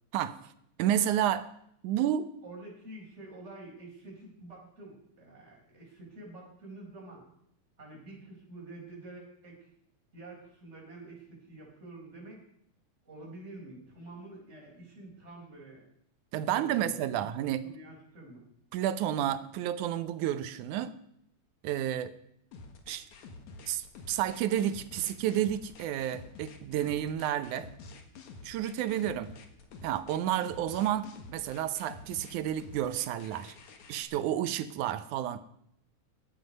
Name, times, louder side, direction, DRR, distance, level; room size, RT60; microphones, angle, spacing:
voice 1, 0.8-1.5 1.8-2.3 16.3-17.7 18.7-20.9 21.6-22.1 22.9-23.1 23.7-27.7 28.4-29.3 29.8-33.6 33.9-35.4, right 11 dB, 80° right, 13 dB, 2.2 m, -31 dB
voice 2, 2.4-7.2 7.8-9.7 10.1-12.4 13.0-15.8 16.4-17.3 17.6-18.4, right 2 dB, 20° right, -3 dB, 5.0 m, -48 dB
sound 1, 22.5-34.0, left 3 dB, 70° left, 2.9 m, -49 dB
17.0 x 12.0 x 5.3 m, 0.73 s
omnidirectional pair, 3.5 m